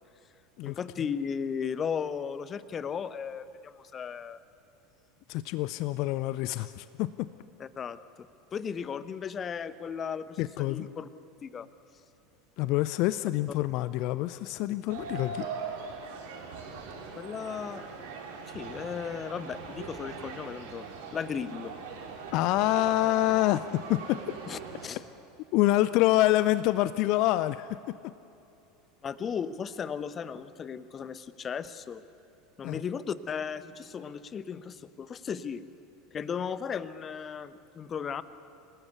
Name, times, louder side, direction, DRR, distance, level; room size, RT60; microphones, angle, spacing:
voice 1, 0.6-4.4 7.6-11.1 11.4-11.7 17.2-17.8 18.5-20.9 21.1-21.7 24.5-25.0 29.0-32.0 32.6-35.6 36.1-38.2, left 7 dB, 30° left, 15 dB, 1.0 m, -36 dB
voice 2, 5.3-7.3 10.4-10.9 12.6-15.5 22.3-24.2 25.5-27.8 32.6-32.8, left 16 dB, 50° left, 15 dB, 0.5 m, -26 dB
sound 1, 14.9-24.9, right 5 dB, 60° right, 3.8 m, -41 dB
27.5 x 18.5 x 8.3 m, 2.8 s
figure-of-eight pair, 75°, 0 cm